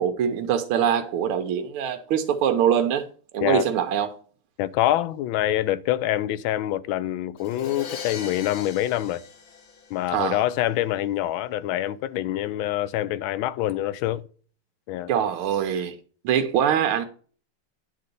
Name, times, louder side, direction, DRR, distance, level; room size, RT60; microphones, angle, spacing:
voice 1, 0.0-3.1 3.3-4.2 10.1-10.4 15.1-16.0 16.2-17.0, right 9 dB, 80° right, 1.7 m, -23 dB
voice 2, 4.6-9.2 9.9-14.2 14.9-15.1, left 13 dB, 75° left, 1.3 m, -25 dB
Crash cymbal, 7.4-10.3, left 6 dB, 50° left, 1.4 m, -39 dB
9.8 x 3.9 x 6.7 m
omnidirectional pair, 2.3 m